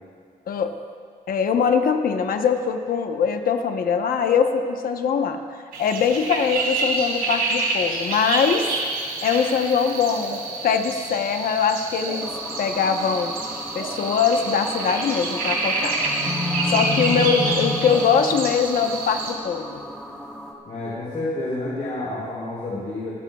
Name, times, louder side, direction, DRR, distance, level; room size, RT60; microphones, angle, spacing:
voice 1, 1.3-5.4 5.8-8.7 9.2-10.4 10.6-12.3 12.6-13.3 13.7-15.9 16.7-19.8, left 6 dB, 75° left, 5 dB, 1.0 m, -22 dB
sound 1, 5.7-19.3, right 3 dB, 85° right, 3.5 m, -28 dB
sound 2, 12.2-20.5, left 1 dB, 5° left, 1.6 m, -31 dB
voice 2, 20.6-23.1, left 2 dB, 50° left, -8 dB, 3.8 m, -29 dB
26.0 x 15.5 x 2.4 m, 2.1 s
wide cardioid pair, 150°, 15 cm